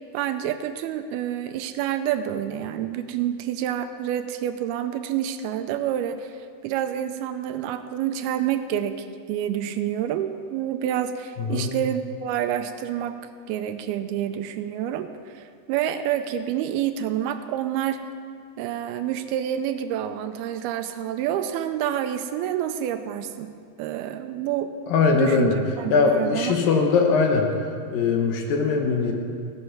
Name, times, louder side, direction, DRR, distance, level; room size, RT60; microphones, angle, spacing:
voice 1, 0.1-6.4 6.6-13.2 13.5-18.0 18.6-24.8 25.1-26.5, right 10 dB, 80° right, 9 dB, 2.4 m, -28 dB
voice 2, 11.4-11.7 24.9-25.6 25.9-27.5 27.9-29.1, left 4 dB, 70° left, 2 dB, 2.6 m, -21 dB
16.0 x 9.7 x 5.8 m, 2.3 s
omnidirectional pair, 4.6 m